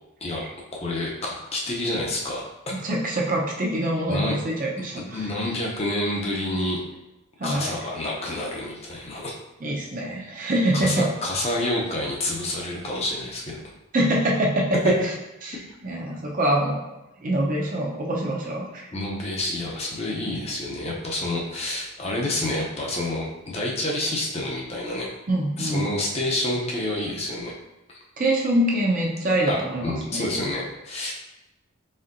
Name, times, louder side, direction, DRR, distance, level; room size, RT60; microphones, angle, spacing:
voice 1, 0.7-2.8 4.1-4.4 4.9-6.8 7.4-9.3 10.7-13.6 18.9-25.1 25.6-27.5 27.9-28.0 29.5-31.1, left 1 dB, 30° left, -2 dB, 0.5 m, -28 dB
voice 2, 2.8-4.9 7.4-7.7 9.6-11.1 13.9-14.9 15.4-15.6 15.8-16.8 17.2-18.9 25.3-25.8 28.2-30.4, right 1 dB, 35° right, -2 dB, 0.6 m, -24 dB
4.2 x 3.7 x 2.5 m, 0.94 s
head